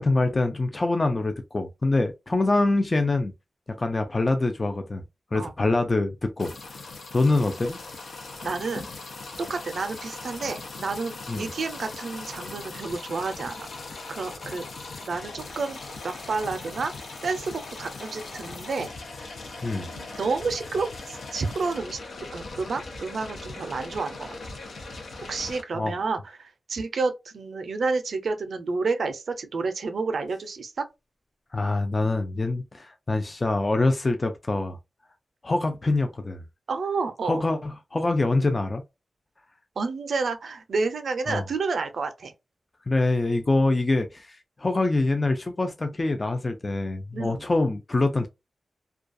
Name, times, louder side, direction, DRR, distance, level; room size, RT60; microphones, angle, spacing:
voice 1, 0.0-3.3 3.8-5.0 5.3-6.9 7.1-7.8 8.8-8.9 11.3-11.5 19.6-19.9 25.7-25.9 31.5-34.8 35.4-36.4 37.2-38.8 41.3-41.4 42.9-48.3, left 2 dB, 25° left, 0.3 m, -25 dB
sound 1, 6.4-25.6, left 3 dB, 90° left, 0.5 m, -39 dB
voice 2, 8.4-8.9 9.4-13.7 14.1-14.6 15.0-15.8 16.0-16.9 17.2-18.9 19.7-22.0 22.3-24.4 25.3-30.9 36.7-37.4 39.8-42.3 47.1-47.4, right 4 dB, 70° right, 0.4 m, -30 dB
2.3 x 2.3 x 2.5 m
wide cardioid pair, 160°, 0 cm